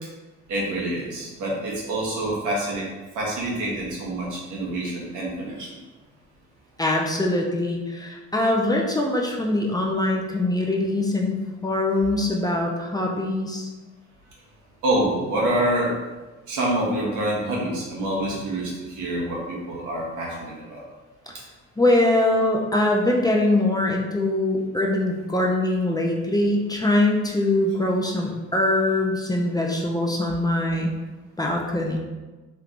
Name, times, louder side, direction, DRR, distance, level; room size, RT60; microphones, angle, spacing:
voice 1, 0.5-2.9 3.1-5.7 14.8-16.0 16.5-20.8 21.3-21.4, right 1 dB, 90° right, -4 dB, 1.1 m, -26 dB
voice 2, 6.8-11.4 11.6-13.7 21.8-30.9 31.4-32.0, left 1 dB, 15° left, -1 dB, 0.4 m, -22 dB
3.3 x 3.1 x 2.5 m, 1.2 s
cardioid pair, 90°, 30 cm